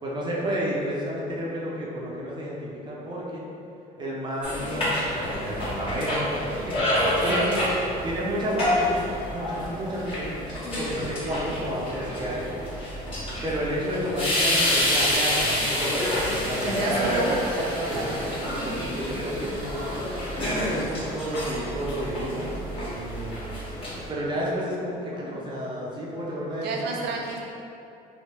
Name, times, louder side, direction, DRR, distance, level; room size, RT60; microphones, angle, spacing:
voice 1, 0.0-3.4 4.0-6.3 6.7-7.5 8.0-9.0 9.3-10.4 10.8-12.5 13.4-16.7 17.9-18.0 18.5-19.9 20.3-23.4 24.1-26.7, equal, 25° right, -5 dB, 0.8 m, -31 dB
sound 1, 4.4-24.1, left 1 dB, 30° left, 1.5 m, -28 dB
voice 2, 7.3-7.8 16.3-18.3 26.6-27.4, right 3 dB, 75° right, -1 dB, 0.6 m, -30 dB
3.2 x 2.7 x 3.0 m, 2.7 s
cardioid pair, 110°, 17 cm